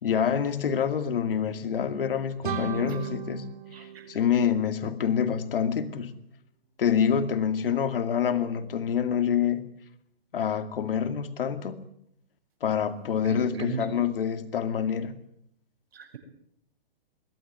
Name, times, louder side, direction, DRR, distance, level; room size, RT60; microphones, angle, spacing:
voice 1, 0.0-6.1 6.8-9.6 10.3-11.8 12.6-15.1, left 8 dB, 65° left, 2.4 m, -27 dB
sound 1, 2.4-5.2, right 8 dB, 55° right, 3.2 m, -36 dB
voice 2, 3.7-4.1 13.2-13.8 15.9-16.2, right 6 dB, 80° right, 6.8 m, -37 dB
23.0 x 15.5 x 9.6 m
hypercardioid pair, 170°, 30 cm